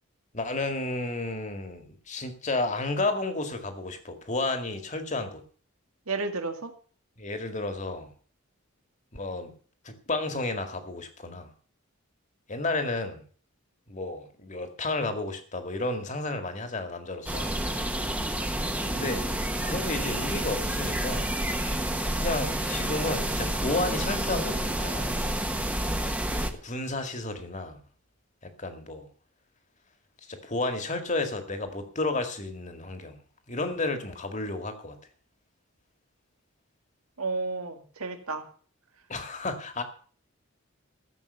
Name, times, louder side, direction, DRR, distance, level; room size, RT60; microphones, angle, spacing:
voice 1, 0.3-5.4 7.2-8.1 9.1-9.5 9.8-11.5 12.5-13.2 13.9-17.5 18.9-19.2 19.6-21.3 22.2-25.1 26.5-27.8 28.4-29.1 30.3-33.2 33.5-35.0 39.1-39.8, left 2 dB, 35° left, 7 dB, 2.0 m, -32 dB
voice 2, 6.1-6.7 37.2-38.4, right 3 dB, 90° right, 6 dB, 2.0 m, -32 dB
sound 1, 17.3-26.5, right 1 dB, 5° right, 1.2 m, -29 dB
14.5 x 7.7 x 6.8 m, 0.43 s
head